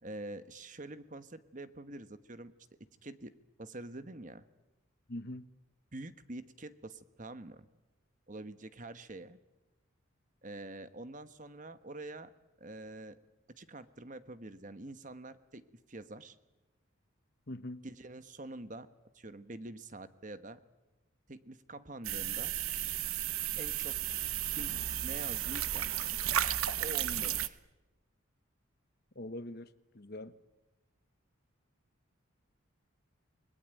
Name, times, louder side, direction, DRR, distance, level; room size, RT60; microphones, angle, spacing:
voice 1, 0.0-2.5 3.0-3.3 3.6-4.5 5.9-7.7 8.3-9.4 10.4-12.3 12.6-13.1 13.5-15.6 15.9-16.4 17.8-18.9 19.1-20.6 21.3-22.5 23.6-24.0 24.5-25.9 26.8-27.6, right 2 dB, 40° right, 1.2 m, -46 dB
voice 2, 5.1-5.5 17.5-17.8 29.1-30.4, left 1 dB, 45° left, 1.0 m, -43 dB
sound 1, 22.0-27.5, right 11 dB, 85° right, 1.0 m, -34 dB
29.5 x 20.5 x 9.2 m
head